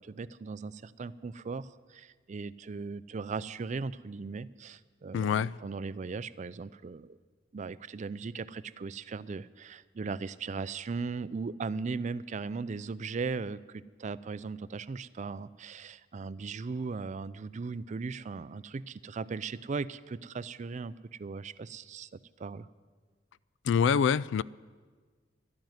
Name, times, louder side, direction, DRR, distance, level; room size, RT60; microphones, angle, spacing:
voice 1, 0.0-7.2 7.5-20.9 21.2-22.7, right 4 dB, 40° right, 0.4 m, -38 dB
voice 2, 5.1-5.6 23.6-24.4, left 7 dB, 65° left, 0.3 m, -25 dB
12.5 x 9.0 x 9.5 m
head